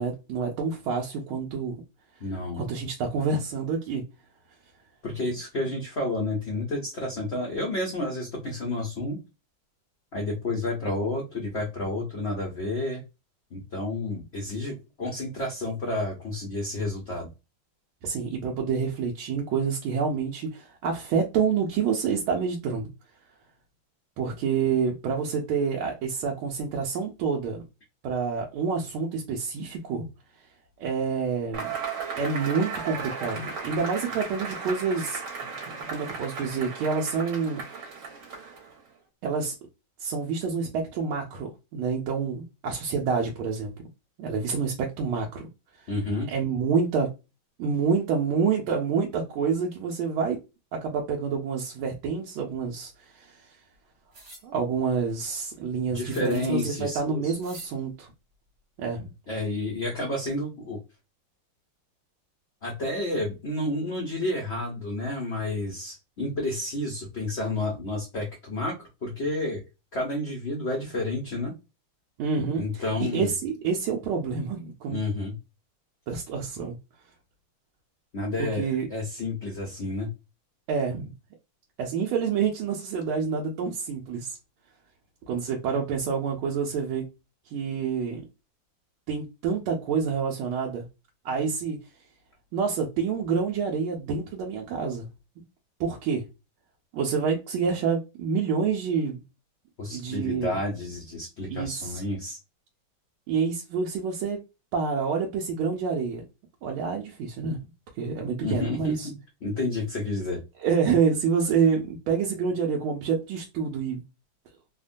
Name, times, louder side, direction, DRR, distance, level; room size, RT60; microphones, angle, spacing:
voice 1, 0.0-1.8 2.5-4.0 18.0-22.9 24.2-27.6 28.0-30.1 30.8-31.7 32.1-35.2 35.9-38.0 39.2-39.5 40.0-43.7 44.2-45.5 45.8-45.9 46.3-47.1 47.6-50.4 50.7-53.6 54.4-58.1 58.8-59.1 72.2-75.0 76.1-76.8 78.4-78.9 80.7-81.1 81.8-84.4 85.3-87.1 87.5-88.3 89.1-90.9 91.2-91.8 92.5-95.1 95.4-95.5 95.8-96.3 96.9-99.2 99.9-100.6 101.5-102.0 103.3-104.4 104.7-106.2 106.6-107.6 108.0-109.1 110.6-114.0, right 5 dB, 90° right, 1.5 m, -28 dB
voice 2, 2.2-2.6 5.0-9.2 10.1-13.0 13.5-17.3 45.9-46.3 55.9-57.4 59.3-60.8 62.6-69.6 69.9-71.5 72.6-73.3 74.9-75.4 78.1-80.1 99.8-102.4 108.4-109.2 109.4-110.4, left 2 dB, 85° left, 0.5 m, -30 dB
Cheering / Applause / Crowd, 31.5-38.8, right 5 dB, 60° right, 1.6 m, -36 dB
sound 1, 54.1-54.5 56.1-56.6 57.4-57.7, right 1 dB, 45° right, 1.1 m, -47 dB
3.5 x 2.1 x 2.4 m
omnidirectional pair, 2.3 m